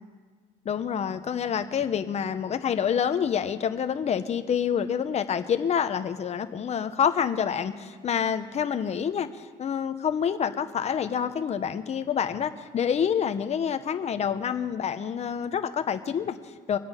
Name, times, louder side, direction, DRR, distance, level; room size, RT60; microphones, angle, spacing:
voice 1, 0.6-16.8, left 8 dB, 40° left, 10 dB, 0.9 m, -27 dB
23.5 x 8.6 x 5.6 m, 1.5 s
cardioid pair, 110°, 17 cm